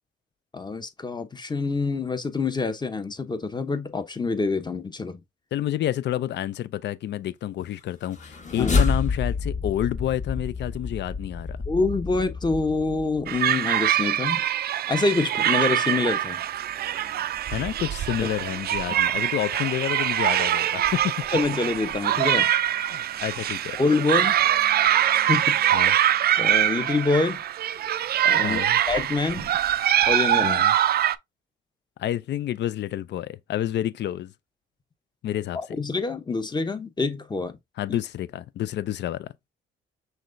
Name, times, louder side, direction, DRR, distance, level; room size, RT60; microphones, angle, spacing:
voice 1, 0.5-5.2 8.5-8.7 11.7-14.4 14.9-16.4 18.2-18.3 18.9-19.0 21.3-22.5 23.8-24.4 25.1-25.9 26.4-27.4 28.2-29.5 30.1-30.6 35.8-37.6 37.9-38.0, left 3 dB, 20° left, 0.9 m, -26 dB
voice 2, 5.5-11.6 17.5-21.1 22.9-23.8 25.7-26.0 28.4-28.8 30.4-30.7 32.0-34.3 35.2-35.6 37.8-39.3, left 12 dB, 60° left, 0.5 m, -29 dB
sound 1, 8.0-13.4, left 4 dB, 35° left, 1.5 m, -28 dB
sound 2, 13.3-31.2, right 11 dB, 50° right, 0.4 m, -23 dB
5.8 x 3.3 x 2.6 m
cardioid pair, 90°, 20 cm